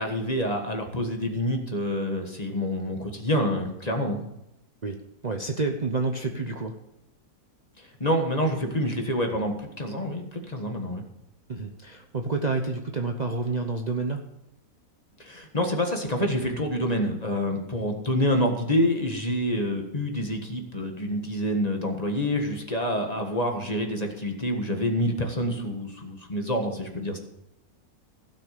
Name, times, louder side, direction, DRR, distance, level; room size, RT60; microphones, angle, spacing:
voice 1, 0.0-4.2 7.8-11.0 15.2-27.2, equal, 25° left, 3 dB, 1.6 m, -27 dB
voice 2, 5.2-6.8 11.5-14.2, right 3 dB, 35° right, 4 dB, 0.8 m, -29 dB
16.0 x 6.3 x 6.7 m, 0.86 s
omnidirectional pair, 1.5 m